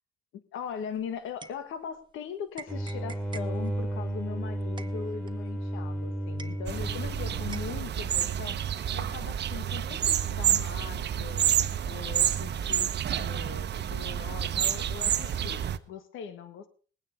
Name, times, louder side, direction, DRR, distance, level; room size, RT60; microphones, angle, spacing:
voice 1, 0.3-8.6 8.9-11.5 11.9-12.9 13.2-16.7, left 7 dB, 85° left, 11 dB, 1.4 m, -40 dB
sound 1, 0.7-2.2 2.5-7.1 7.5-8.6, right 4 dB, 25° right, 1.2 m, -49 dB
sound 2, 2.7-8.0, right 1 dB, 5° left, 3.6 m, -33 dB
sound 3, 6.7-15.8, right 9 dB, 60° right, 1.0 m, -29 dB
19.5 x 9.4 x 5.1 m, 0.41 s
cardioid pair, 90°, 20 cm